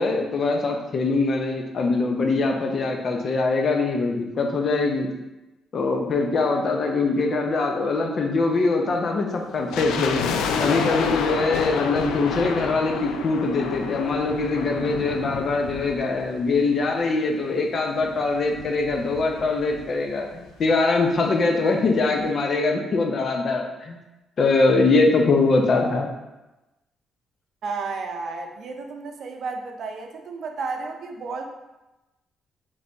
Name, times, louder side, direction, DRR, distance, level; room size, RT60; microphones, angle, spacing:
voice 1, 0.0-5.1 5.7-10.2 10.6-24.0 24.4-26.1, left 3 dB, 50° left, 2 dB, 0.7 m, -22 dB
sound 1, 9.7-17.0 17.2-17.3 18.0-19.8 20.1-20.2 20.4-20.7 21.2-21.3, left 6 dB, 90° left, 0.3 m, -29 dB
voice 2, 27.6-31.5, right 4 dB, 60° right, 4 dB, 0.5 m, -32 dB
4.0 x 3.3 x 3.4 m, 1.0 s
cardioid pair, 90°, 0 cm